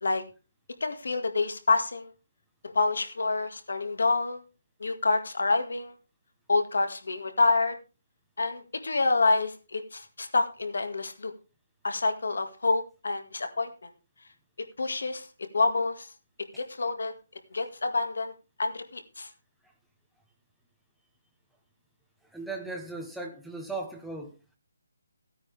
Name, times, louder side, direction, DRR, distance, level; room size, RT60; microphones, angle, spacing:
voice 1, 0.8-2.1 2.7-4.4 4.8-5.9 6.5-7.8 8.4-11.3 11.8-13.7 14.8-15.3 15.5-16.1 16.6-17.1 17.5-18.3 18.6-19.3, left 3 dB, 70° left, 7 dB, 1.9 m, -27 dB
voice 2, 22.3-24.4, right 3 dB, ahead, 0 dB, 0.8 m, -37 dB
15.5 x 9.7 x 3.4 m, 0.31 s
hypercardioid pair, 175°, 0 cm